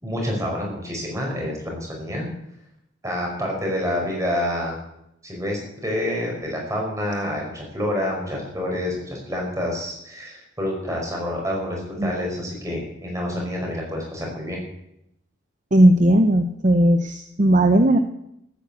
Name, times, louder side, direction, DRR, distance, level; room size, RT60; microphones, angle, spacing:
voice 1, 0.0-2.3 3.0-4.8 5.2-14.6, left 1 dB, 15° right, -1 dB, 5.2 m, -28 dB
voice 2, 15.7-18.0, right 1 dB, 40° right, 8 dB, 0.8 m, -16 dB
14.0 x 9.3 x 8.3 m, 0.79 s
head